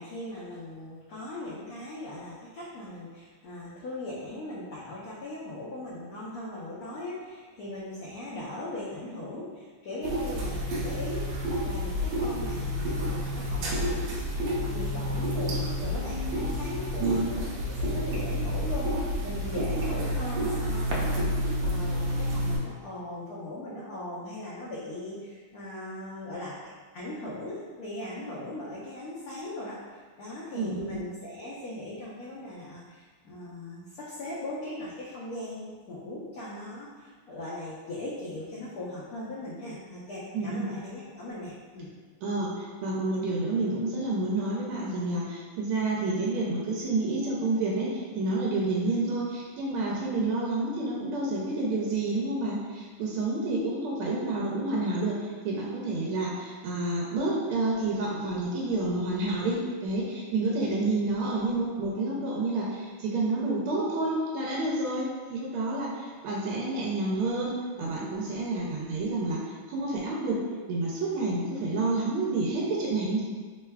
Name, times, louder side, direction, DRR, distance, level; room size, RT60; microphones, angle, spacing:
voice 1, 0.0-11.3 11.6-26.5 26.9-41.9 48.8-49.0, left 1 dB, 75° left, -8 dB, 0.8 m, -39 dB
sound 1, 10.0-22.6, equal, 75° right, 1.3 m, -29 dB
voice 2, 30.5-31.0 40.3-40.7 42.2-70.4 70.7-73.2, right 2 dB, 90° right, -4 dB, 1.5 m, -29 dB
3.6 x 3.3 x 2.2 m, 1.5 s
omnidirectional pair, 2.3 m